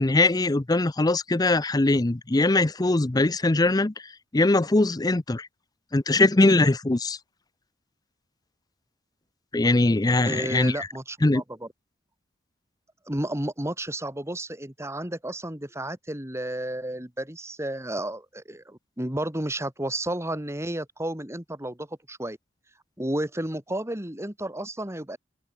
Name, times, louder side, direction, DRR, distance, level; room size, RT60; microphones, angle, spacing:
voice 1, 0.0-3.9 4.3-5.5 5.9-7.2 9.5-10.9 11.2-11.4, left 2 dB, 20° left, 0.6 m, -21 dB
voice 2, 10.2-11.7 13.1-22.4 23.0-25.2, right 1 dB, 15° right, 2.5 m, -32 dB
open air
head